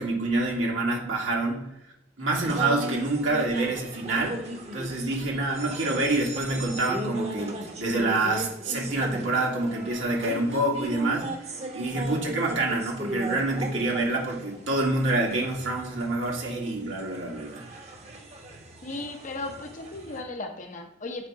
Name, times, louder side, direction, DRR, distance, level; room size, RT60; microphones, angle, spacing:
voice 1, 0.0-1.7 2.2-4.4 4.7-11.3 11.7-17.6, right 2 dB, 85° right, -1 dB, 1.9 m, -27 dB
sound 1, 2.4-20.2, right 1 dB, 35° right, 0.9 m, -37 dB
voice 2, 18.8-21.3, left 2 dB, 40° left, 6 dB, 0.7 m, -36 dB
7.4 x 3.5 x 4.7 m, 0.86 s
head